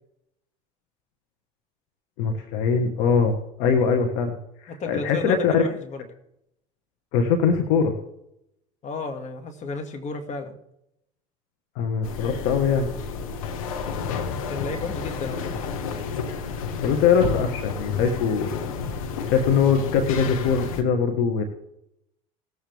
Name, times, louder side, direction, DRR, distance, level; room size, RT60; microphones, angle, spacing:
voice 1, 2.2-4.4 4.6-5.6 7.1-7.9 11.7-12.9 16.8-18.6 19.3-21.4, left 6 dB, 70° left, 5 dB, 1.6 m, -22 dB
voice 2, 4.7-6.0 8.8-10.5 14.3-15.5, left 3 dB, 45° left, 5 dB, 2.1 m, -33 dB
sound 1, 12.0-20.8, left 5 dB, 90° left, 1.4 m, -31 dB
19.5 x 8.0 x 3.6 m, 0.79 s
hypercardioid pair, 85°, 17 cm